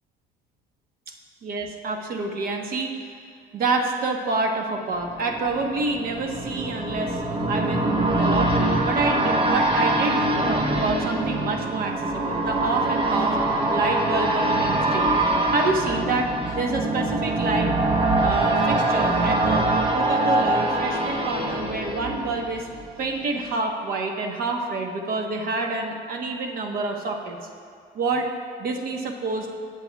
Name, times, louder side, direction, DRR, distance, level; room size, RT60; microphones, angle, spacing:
voice 1, 1.4-3.0 3.5-7.2 7.5-13.4 13.7-15.1 15.5-17.7 18.2-22.7 23.0-27.4 27.9-28.3 28.6-29.5, right 3 dB, 60° right, 3 dB, 1.1 m, -27 dB
sound 1, 5.0-22.8 23.2-23.3, right 2 dB, 30° right, 1.0 m, -24 dB
16.0 x 7.9 x 2.3 m, 2.3 s
cardioid pair, 110°, 17 cm